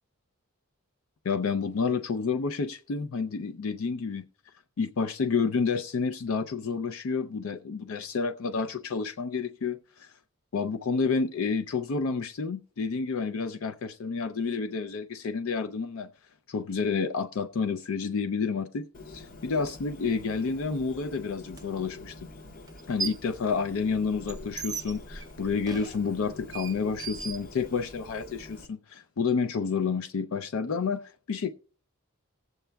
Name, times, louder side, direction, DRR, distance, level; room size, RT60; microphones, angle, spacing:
voice 1, 1.2-4.2 4.8-10.1 10.5-16.1 16.5-22.3 22.9-31.5, left 5 dB, 70° left, 0.4 m, -30 dB
Bird, 18.9-28.7, left 2 dB, 40° left, 0.8 m, -47 dB
sound 1, 21.5-21.6 22.7-23.3 23.7-28.1, right 5 dB, 15° right, 0.4 m, -38 dB
18.5 x 7.8 x 2.2 m
head